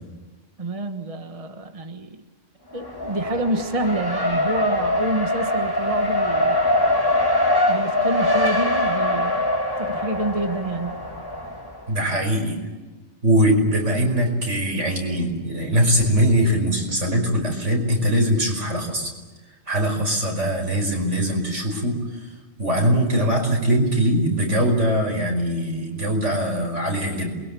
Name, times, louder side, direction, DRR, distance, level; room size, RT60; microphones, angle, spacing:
voice 1, 0.6-2.2 2.7-6.6 7.7-9.5 9.8-11.0, right 1 dB, 30° right, 6 dB, 1.5 m, -27 dB
Race car auto racing, 2.7-11.8, left 1 dB, 20° left, 2.6 m, -23 dB
voice 2, 11.9-12.6 13.2-19.1 19.7-22.0 22.6-27.3, equal, 85° right, 2 dB, 5.7 m, -21 dB
28.0 x 22.5 x 8.5 m, 1.2 s
omnidirectional pair, 1.2 m